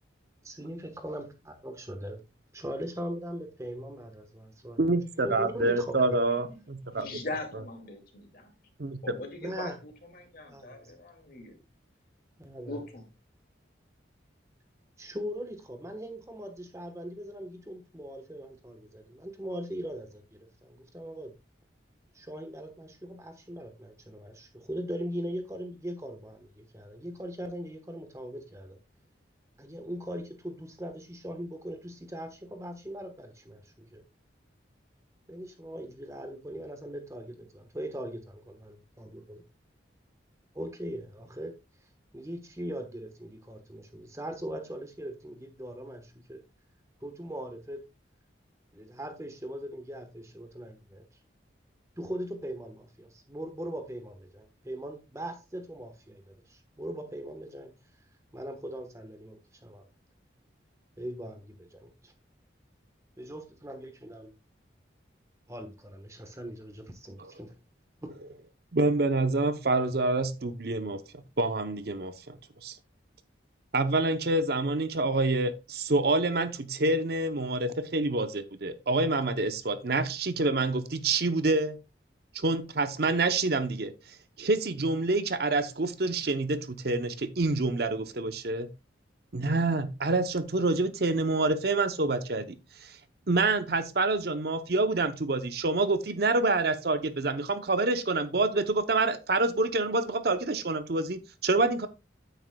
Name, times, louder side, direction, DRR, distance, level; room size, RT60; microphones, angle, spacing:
voice 1, 0.4-2.2 2.5-6.2 9.4-9.7 10.5-10.9 12.4-12.8 15.0-21.3 22.1-28.8 29.6-34.0 35.3-39.4 40.5-41.5 42.1-46.4 47.0-47.8 48.7-51.0 52.0-57.7 58.3-59.8 61.0-62.1 63.2-64.3 65.5-67.5 68.0-68.1, equal, 15° right, 1.2 m, -40 dB
voice 2, 4.8-7.1 8.8-9.0 67.2-67.3 68.7-71.0 71.4-72.4 72.6-72.8 73.7-81.8 82.3-83.9 84.4-88.7 89.3-92.5 92.8-93.0 93.3-101.9, right 2 dB, 55° right, 0.7 m, -27 dB
voice 3, 6.2-6.6 6.9-8.5 9.0-11.5 12.7-13.0, left 2 dB, 50° left, 2.2 m, -41 dB
9.1 x 9.1 x 2.3 m
head